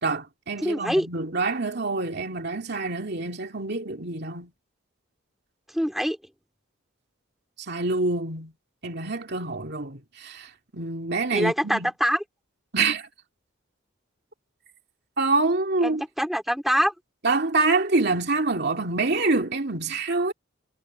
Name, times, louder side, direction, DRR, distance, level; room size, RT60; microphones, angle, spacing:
voice 1, 0.0-4.5 7.7-8.5 8.8-11.9 12.7-13.1 15.2-16.0 17.2-20.3, right 3 dB, 50° right, 2.7 m, -26 dB
voice 2, 0.6-1.1 5.7-6.2 11.3-12.2 15.8-16.9, equal, ahead, 2.8 m, -24 dB
head